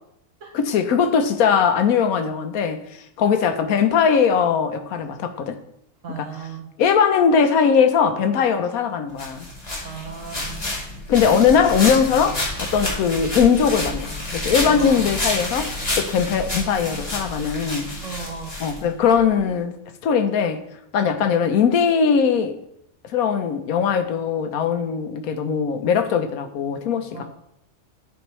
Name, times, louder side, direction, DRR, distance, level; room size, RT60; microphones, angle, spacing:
voice 1, 0.5-2.8 3.2-5.6 6.1-6.3 6.8-9.5 11.1-17.9 18.6-19.7 20.0-20.6 20.9-22.6 23.1-27.2, left 6 dB, 85° left, 1.2 m, -20 dB
voice 2, 6.0-6.7 9.8-10.6 14.7-15.0 18.0-18.5 27.1-27.2, right 5 dB, 65° right, 1.1 m, -35 dB
sound 1, 9.2-19.2, left 1 dB, 30° left, 1.9 m, -29 dB
11.5 x 4.5 x 3.2 m
omnidirectional pair, 1.5 m